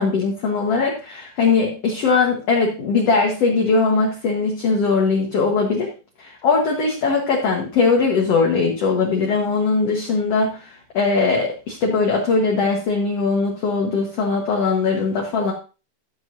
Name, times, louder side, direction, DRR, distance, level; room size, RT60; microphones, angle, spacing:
voice 1, 0.0-5.9 6.2-15.5, left 4 dB, 60° left, 0 dB, 1.7 m, -20 dB
14.5 x 7.3 x 2.7 m, 0.32 s
omnidirectional pair, 4.7 m